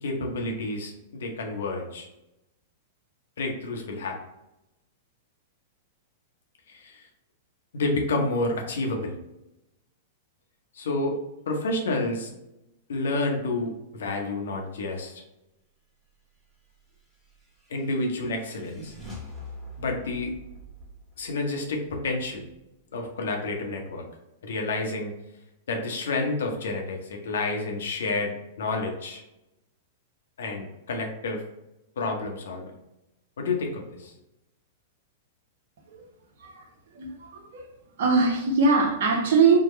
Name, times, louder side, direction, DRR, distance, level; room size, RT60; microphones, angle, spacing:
voice 1, 0.0-2.1 3.4-4.2 6.7-7.1 7.7-9.2 10.7-11.2 11.5-12.3 12.9-15.2 17.7-18.9 19.8-20.3 21.2-22.4 22.9-24.0 24.4-25.1 25.7-29.2 30.4-31.4 32.0-32.6 33.4-34.1, left 2 dB, 65° left, 0.8 m, -29 dB
sound 1, 16.9-22.5, left 1 dB, ahead, 1.2 m, -45 dB
voice 2, 36.9-37.7 38.0-39.6, right 4 dB, 60° right, 0.8 m, -22 dB
4.6 x 2.2 x 3.0 m
figure-of-eight pair, 100°, 0 cm